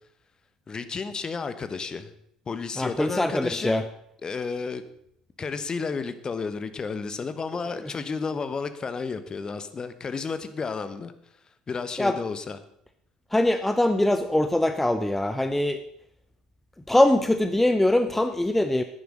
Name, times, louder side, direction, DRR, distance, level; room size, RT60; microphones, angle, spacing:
voice 1, 0.7-2.1 2.5-3.9 4.2-4.8 5.4-11.1 11.7-12.6, left 5 dB, 30° left, 11 dB, 1.2 m, -32 dB
voice 2, 2.8-3.8 7.8-7.9 12.0-12.2 13.3-15.8 16.9-18.8, left 1 dB, 10° left, 9 dB, 0.8 m, -22 dB
10.5 x 9.5 x 6.4 m, 0.72 s
figure-of-eight pair, 55°, 2 cm